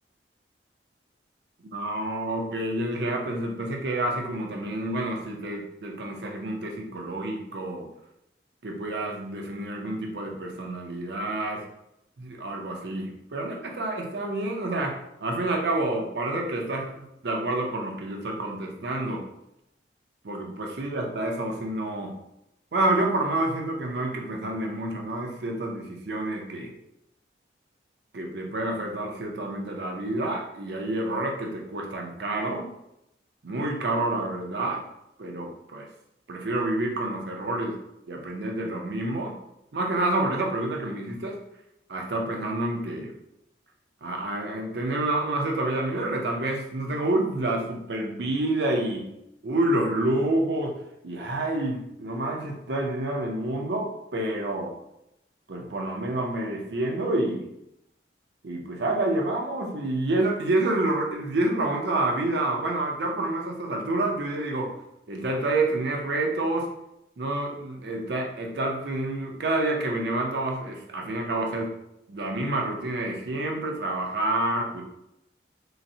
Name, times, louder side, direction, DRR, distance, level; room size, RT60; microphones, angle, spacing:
voice 1, 1.7-7.9 8.6-11.6 12.2-19.2 20.2-22.2 22.7-26.7 28.1-32.7 33.4-34.8 35.2-35.9 36.3-37.8 38.1-39.4 39.7-41.4 41.9-43.1 44.0-49.1 49.4-50.8 51.0-54.7 55.5-57.5 58.4-64.7 65.1-66.7 67.2-71.7 72.1-74.8, right 2 dB, 65° right, 1 dB, 0.6 m, -28 dB
3.9 x 2.1 x 2.7 m, 0.84 s
head